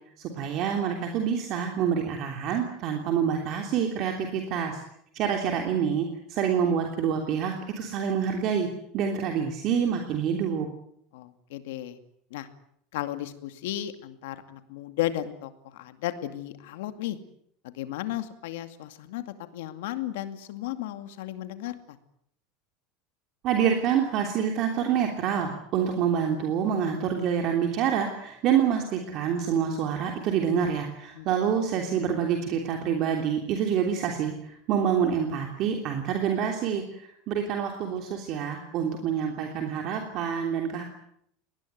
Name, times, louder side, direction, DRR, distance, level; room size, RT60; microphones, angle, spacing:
voice 1, 0.2-4.8 5.1-8.7 8.9-10.7 23.4-40.8, right 8 dB, 40° right, 3 dB, 3.2 m, -27 dB
voice 2, 11.1-12.0 12.3-12.5 12.9-17.2 17.6-22.0 31.1-31.3, left 13 dB, 90° left, 9 dB, 2.3 m, -34 dB
23.0 x 19.5 x 9.4 m, 0.69 s
cardioid pair, 170°, 0 cm